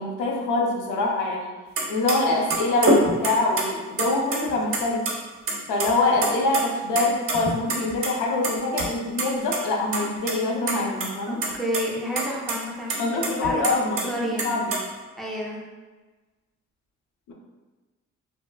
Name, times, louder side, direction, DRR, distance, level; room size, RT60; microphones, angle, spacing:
voice 1, 0.0-1.5 1.9-5.1 5.7-11.4 13.0-14.6 17.3-17.4, left 2 dB, 90° left, 0 dB, 0.6 m, -24 dB
sound 1, 1.8-2.2 2.5-3.6 4.0-4.8 5.1-5.2 5.5-5.9 6.2-6.6 7.0-8.1 8.4-8.9 9.2-9.3 9.5-9.6 9.9-10.3 10.7-11.1 11.4-11.8 12.2-12.3 12.5-12.6 12.9-14.0 14.4-14.8, right 3 dB, 45° right, 0.6 m, -25 dB
voice 2, 11.3-13.6 14.1-14.6 15.2-15.6, equal, ahead, -4 dB, 0.5 m, -30 dB
2.8 x 2.2 x 2.3 m, 1.3 s
cardioid pair, 90°, 30 cm